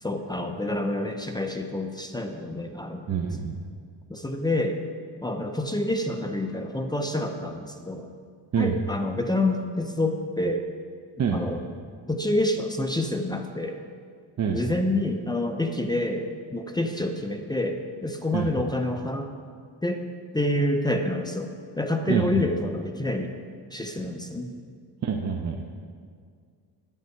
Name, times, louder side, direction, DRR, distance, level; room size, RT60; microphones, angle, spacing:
voice 1, 0.0-3.1 4.1-4.8 5.2-8.1 8.6-10.6 11.3-11.6 12.1-13.8 14.5-19.3 19.8-20.0 20.3-23.3 23.7-24.5, left 1 dB, 10° left, 4 dB, 0.6 m, -28 dB
voice 2, 3.1-3.6 8.5-8.8 11.2-11.4 14.4-14.6 18.3-18.5 22.1-22.4 25.0-25.6, right 7 dB, 40° right, 2 dB, 0.8 m, -26 dB
11.0 x 9.6 x 4.5 m, 2.1 s
cardioid pair, 115°, 42 cm